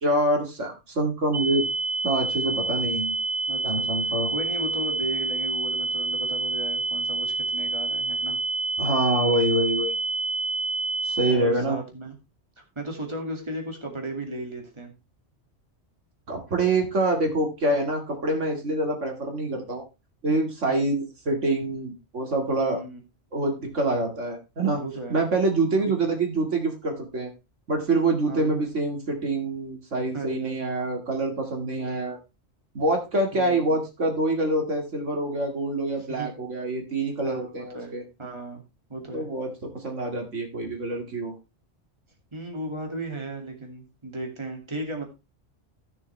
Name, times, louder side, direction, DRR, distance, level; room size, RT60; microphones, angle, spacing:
voice 1, 0.0-1.7 2.0-3.1 3.6-4.3 8.8-9.9 11.0-11.8 16.3-19.8 20.2-22.8 23.3-24.8 25.1-27.3 27.7-32.2 32.7-38.0 39.1-41.3, right 2 dB, 80° right, 3 dB, 2.5 m, -26 dB
sound 1, 1.3-11.3, right 2 dB, 70° left, 3.0 m, -28 dB
voice 2, 3.5-8.4 9.1-9.5 11.3-12.1 12.8-14.9 20.7-20.9 22.6-23.0 24.7-25.2 25.8-25.9 28.3-28.6 30.1-30.6 31.7-32.0 33.3-33.8 36.2-36.3 37.2-37.5 37.7-38.6 38.9-39.3 42.3-45.1, right 1 dB, 25° right, 2 dB, 2.4 m, -35 dB
15.0 x 6.7 x 3.3 m, 0.26 s
omnidirectional pair, 1.2 m